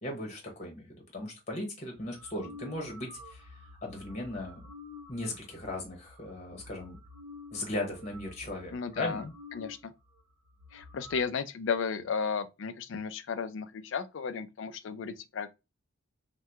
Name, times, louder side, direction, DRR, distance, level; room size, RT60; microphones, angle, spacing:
voice 1, 0.0-0.9 1.1-4.6 5.1-7.0 7.5-9.2, left 1 dB, 35° left, 1.0 m, -37 dB
sound 1, 1.9-9.8 10.2-10.3 10.5-11.2, left 3 dB, 75° right, 0.8 m, -50 dB
voice 2, 8.7-9.2 9.5-9.9 10.7-15.5, left 6 dB, 60° left, 0.4 m, -34 dB
2.8 x 2.2 x 3.3 m
head